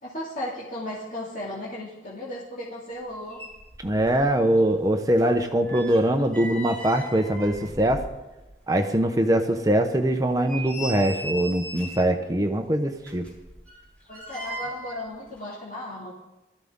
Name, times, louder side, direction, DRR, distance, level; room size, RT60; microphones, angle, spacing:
voice 1, 0.0-3.4 14.1-16.1, left 1 dB, 45° left, -6 dB, 2.4 m, -35 dB
sound 1, 3.0-3.1 3.3-4.3 4.6-8.5 8.9-9.0 9.5-9.6 10.2-12.1 13.0-15.0 15.3-15.4, right 1 dB, 10° left, 5.1 m, -38 dB
voice 2, 3.8-8.0 8.7-13.3, right 1 dB, 20° right, 5 dB, 0.8 m, -22 dB
19.0 x 13.5 x 3.7 m, 1.0 s
head